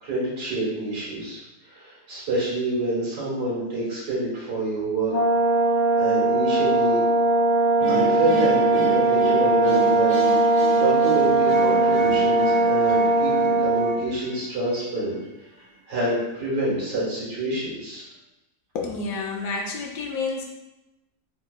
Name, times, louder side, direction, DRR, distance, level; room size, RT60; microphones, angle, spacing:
voice 1, 0.0-5.1 6.0-7.1 7.9-15.2 15.9-18.0, right 1 dB, 75° right, -7 dB, 1.9 m, -27 dB
Brass instrument, 5.1-14.0, right 2 dB, 20° left, 0.8 m, -20 dB
sound 1, 7.8-14.9, right 2 dB, 30° right, 0.7 m, -33 dB
voice 2, 18.7-20.4, left 4 dB, 70° left, 0 dB, 1.0 m, -29 dB
3.6 x 2.8 x 2.3 m, 0.97 s
omnidirectional pair, 1.7 m